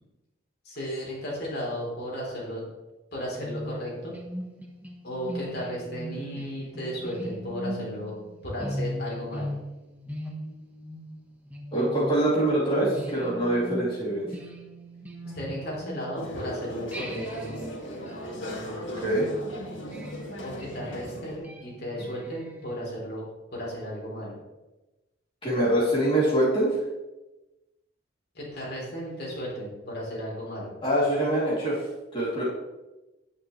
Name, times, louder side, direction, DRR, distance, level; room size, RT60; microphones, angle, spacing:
voice 1, 0.6-2.6 3.1-4.1 5.0-8.1 8.4-9.5 15.2-17.5 20.4-23.3 23.5-24.4 28.3-30.7, equal, 55° left, -4 dB, 3.5 m, -34 dB
sound 1, 3.4-16.5 16.9-22.8, equal, 10° right, 1.2 m, -39 dB
voice 2, 11.7-14.3 19.0-19.3 25.4-26.7 30.8-31.8 32.1-32.4, right 1 dB, 30° left, -7 dB, 2.9 m, -24 dB
sound 2, 16.2-21.4, equal, 75° left, 2.2 m, -38 dB
10.5 x 9.2 x 3.2 m, 1.0 s
head